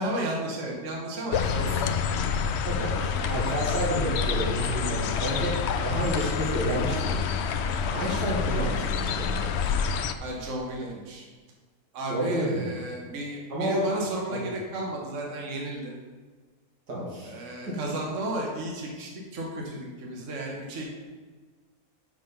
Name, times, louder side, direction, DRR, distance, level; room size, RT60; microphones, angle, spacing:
voice 1, 0.0-1.9 10.2-11.2 11.9-15.9 17.2-20.9, right 1 dB, 50° right, -1 dB, 1.5 m, -33 dB
sound 1, 1.3-10.1, left 6 dB, 80° left, 0.5 m, -27 dB
voice 2, 2.7-7.3 7.9-9.5 12.1-12.7 13.5-13.9 14.3-14.4 16.9-17.3 17.7-17.8, right 1 dB, 90° right, -5 dB, 2.7 m, -30 dB
7.7 x 4.8 x 5.4 m, 1.4 s
omnidirectional pair, 1.7 m